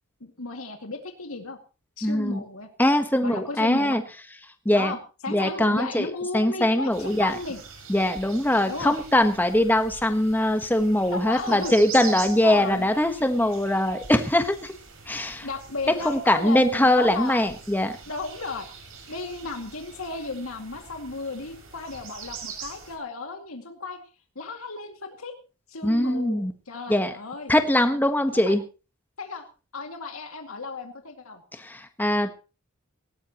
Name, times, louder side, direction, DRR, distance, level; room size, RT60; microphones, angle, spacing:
voice 1, 0.2-1.6 2.0-2.7 3.2-4.0 4.7-7.6 8.7-9.0 11.1-11.8 12.4-12.9 15.2-17.5 18.1-18.7 19.1-24.0 24.4-25.3 25.7-27.5 28.3-28.6 29.2-29.5 29.7-31.4, left 3 dB, 80° left, 4 dB, 2.3 m, -34 dB
voice 2, 2.0-2.4 2.8-4.0 4.6-4.9 5.3-7.4 7.9-14.7 15.1-15.5 16.0-18.0 25.8-26.5 26.9-27.1 27.5-28.6 31.5-32.3, left 1 dB, 10° left, 7 dB, 1.2 m, -22 dB
sound 1, 6.9-23.0, right 6 dB, 65° right, 6.3 m, -43 dB
18.5 x 17.5 x 3.0 m, 0.33 s
head